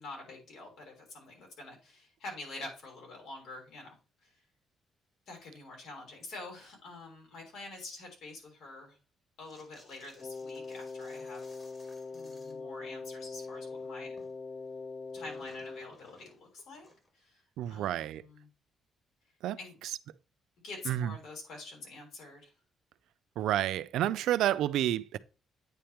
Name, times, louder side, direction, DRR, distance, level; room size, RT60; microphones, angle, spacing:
voice 1, 0.0-3.9 5.3-9.0 9.4-11.4 12.1-14.2 15.1-16.9 17.1-17.4 17.7-18.5 19.6-19.8 20.6-22.5, left 2 dB, 75° left, 3.4 m, -46 dB
sound 1, 9.5-12.7 13.0-14.4 14.6-17.2, left 1 dB, 25° left, 1.9 m, -61 dB
Wind instrument woodwind instrument, 10.2-15.9, left 4 dB, 40° left, 0.4 m, -42 dB
voice 2, 17.6-18.2 19.4-20.0 20.9-21.1 23.4-25.2, right 12 dB, 85° right, 0.4 m, -30 dB
8.9 x 3.4 x 4.3 m
cardioid pair, 90°, 0 cm